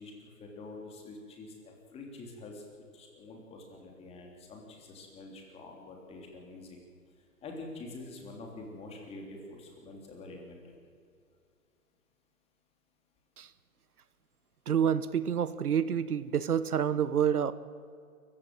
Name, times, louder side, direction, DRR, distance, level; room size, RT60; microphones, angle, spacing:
voice 1, 0.0-2.6 2.9-6.8 7.4-10.7, left 2 dB, 15° left, 1 dB, 3.3 m, -46 dB
voice 2, 14.7-17.5, right 8 dB, 75° right, 15 dB, 1.2 m, -28 dB
26.0 x 15.5 x 9.0 m, 2.3 s
hypercardioid pair, 150°, 45 cm